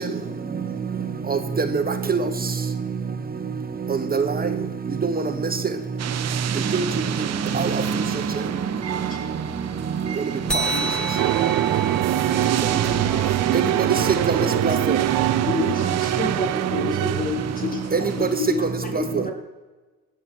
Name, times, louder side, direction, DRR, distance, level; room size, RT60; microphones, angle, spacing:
voice 1, 1.3-1.8 2.1-2.2 4.1-4.5 5.1-5.2 6.7-6.8 7.5-7.8 13.5-13.6 14.3-14.8 17.9-18.0 18.9-19.2, right 4 dB, 30° right, 8 dB, 1.2 m, -22 dB
sound 1, 6.0-18.7, right 10 dB, 60° right, 0.8 m, -31 dB
voice 2, 10.2-11.6 12.7-13.4, left 4 dB, 80° left, -1 dB, 4.7 m, -42 dB
sound 2, 10.5-15.4, right 4 dB, 5° left, 1.7 m, -31 dB
sound 3, 11.2-17.7, right 15 dB, 90° right, 0.6 m, -24 dB
voice 3, 15.5-19.3, left 4 dB, 30° left, 1 dB, 3.7 m, -29 dB
17.5 x 7.4 x 6.4 m, 1.2 s
cardioid pair, 90°, 30 cm